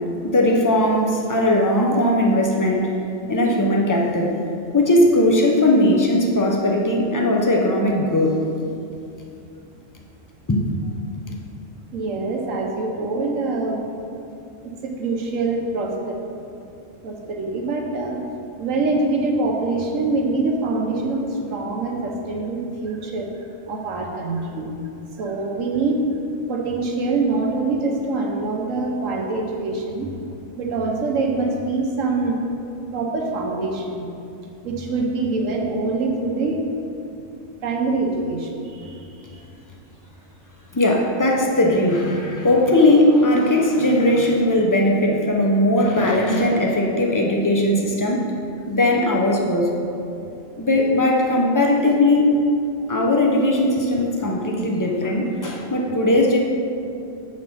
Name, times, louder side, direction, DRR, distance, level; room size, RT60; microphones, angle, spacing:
voice 1, 0.2-2.9 3.3-4.3 4.7-8.4 10.5-10.6 40.7-48.2 48.7-49.7 50.6-52.4 52.9-56.4, left 1 dB, 30° left, 0 dB, 0.3 m, -18 dB
voice 2, 11.9-13.9 14.8-16.2 17.0-18.2 18.6-23.3 23.7-24.6 25.2-26.0 26.5-30.1 30.6-32.4 32.9-34.0 34.6-36.6 37.6-38.9, right 3 dB, 85° right, 1 dB, 1.2 m, -24 dB
6.6 x 4.1 x 5.3 m, 2.6 s
omnidirectional pair, 1.3 m